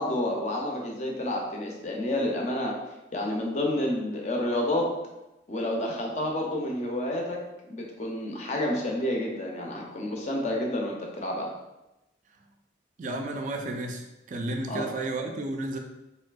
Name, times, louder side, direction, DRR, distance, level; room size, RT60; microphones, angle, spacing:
voice 1, 0.0-2.8 3.1-4.9 5.5-7.4 7.7-11.5 14.7-14.8, left 1 dB, 40° left, 0 dB, 0.5 m, -29 dB
voice 2, 13.0-15.8, right 2 dB, 40° right, 3 dB, 0.3 m, -32 dB
3.2 x 2.6 x 2.2 m, 0.97 s
head